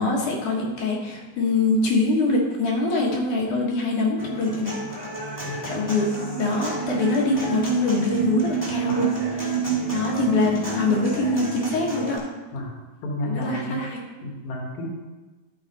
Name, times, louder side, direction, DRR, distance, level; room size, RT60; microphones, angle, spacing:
voice 1, 0.0-4.7 5.6-6.1 6.4-9.1 9.9-12.2 13.3-14.0, left 3 dB, 80° left, -2 dB, 3.0 m, -24 dB
Human voice / Acoustic guitar, 4.2-12.2, left 1 dB, 10° left, 1.3 m, -34 dB
sound 1, 6.0-11.8, right 10 dB, 80° right, 1.9 m, -28 dB
voice 2, 13.0-13.9 14.2-14.9, left 1 dB, 60° left, 0 dB, 2.0 m, -31 dB
11.5 x 4.9 x 4.2 m, 1.2 s
omnidirectional pair, 3.5 m